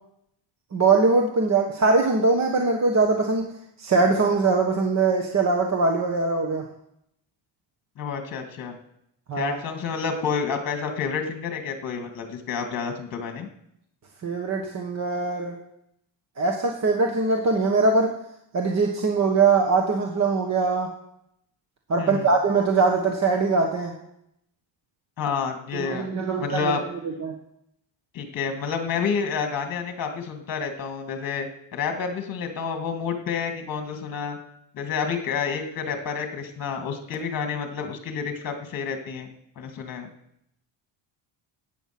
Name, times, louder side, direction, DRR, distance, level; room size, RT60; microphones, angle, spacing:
voice 1, 0.7-3.4 3.8-6.6 9.3-9.6 14.2-15.6 16.4-18.1 18.5-20.9 21.9-23.9 25.7-26.7 27.2-27.3, right 3 dB, 35° right, 2 dB, 1.4 m, -22 dB
voice 2, 8.0-8.7 9.4-13.5 22.0-22.3 25.2-26.1 26.4-26.8 28.1-34.4 34.7-39.3 39.6-40.1, left 6 dB, 45° left, 5 dB, 2.1 m, -29 dB
14.5 x 9.3 x 6.0 m, 0.77 s
cardioid pair, 155°, 48 cm